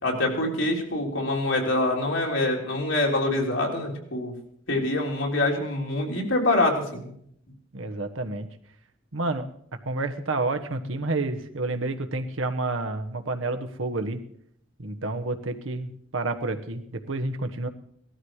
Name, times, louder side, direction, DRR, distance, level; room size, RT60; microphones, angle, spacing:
voice 1, 0.0-4.3 4.7-7.1, left 2 dB, 75° left, 0 dB, 3.6 m, -25 dB
voice 2, 7.7-8.5 9.1-9.5 9.8-14.2 14.8-17.7, right 2 dB, 85° right, 6 dB, 1.3 m, -29 dB
18.0 x 13.0 x 4.9 m, 0.69 s
head